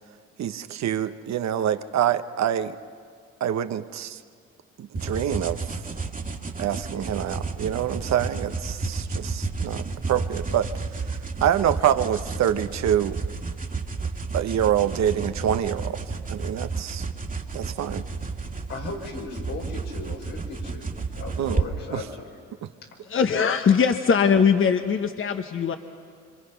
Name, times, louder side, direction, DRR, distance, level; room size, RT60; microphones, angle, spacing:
voice 1, 0.4-2.8 3.4-4.2 4.8-5.8 6.6-10.7 10.9-13.2 14.3-17.1 17.5-18.0 21.4-21.6 21.9-22.0 22.6-22.7, right 10 dB, 65° right, 10 dB, 1.0 m, -26 dB
sound 1, 4.9-21.7, right 4 dB, 30° right, 1.9 m, -32 dB
voice 2, 18.7-20.9 21.1-22.3, left 3 dB, 80° left, -1 dB, 5.1 m, -36 dB
voice 3, 23.1-25.8, left 6 dB, 45° left, 7 dB, 1.2 m, -21 dB
26.5 x 25.5 x 5.8 m, 2.1 s
supercardioid pair, 65°, 29 cm